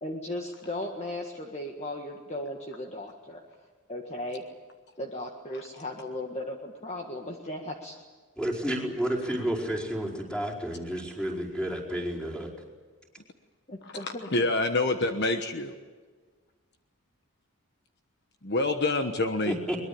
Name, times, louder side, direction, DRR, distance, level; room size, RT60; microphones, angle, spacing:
voice 1, 0.0-3.4 3.9-4.4 5.0-8.0 13.7-14.3, left 1 dB, 30° left, 2 dB, 1.7 m, -36 dB
voice 2, 8.4-12.5 19.5-19.8, equal, 5° left, -1 dB, 4.8 m, -31 dB
voice 3, 13.8-15.7 18.4-19.6, left 2 dB, 50° left, 6 dB, 1.3 m, -27 dB
22.5 x 22.0 x 8.7 m, 1.4 s
head